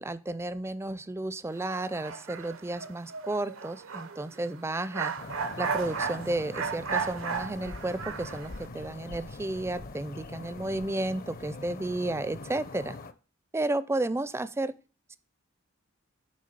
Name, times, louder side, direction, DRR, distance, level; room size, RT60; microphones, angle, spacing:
voice 1, 0.0-5.1 5.6-13.0 13.5-14.7 15.1-15.2, right 2 dB, 15° right, 15 dB, 0.4 m, -32 dB
sound 1, 1.6-8.7, right 5 dB, 85° right, 0.8 m, -35 dB
sound 2, 5.2-13.1, left 2 dB, 45° left, 0.7 m, -43 dB
9.6 x 3.4 x 6.7 m, 0.34 s
head